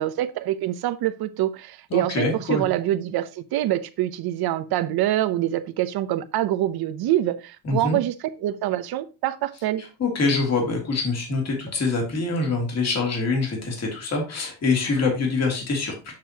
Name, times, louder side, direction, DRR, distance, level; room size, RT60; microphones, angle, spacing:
voice 1, 0.0-8.1 8.4-9.8, right 13 dB, 55° right, 0.8 m, -25 dB
voice 2, 1.9-2.6 7.6-8.0 9.8-16.1, left 3 dB, 35° left, 2.5 m, -25 dB
7.6 x 6.5 x 2.8 m
cardioid pair, 140°, 44 cm